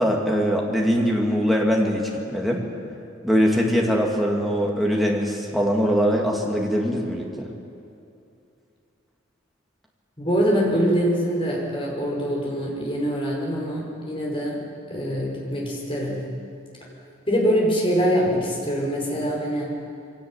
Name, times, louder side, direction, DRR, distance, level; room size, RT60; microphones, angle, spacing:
voice 1, 0.0-2.6 3.2-7.5, equal, ahead, -1 dB, 2.6 m, -22 dB
voice 2, 10.2-14.6 14.9-16.2 17.3-19.7, equal, 25° left, -2 dB, 5.5 m, -24 dB
23.0 x 17.5 x 9.1 m, 2.6 s
head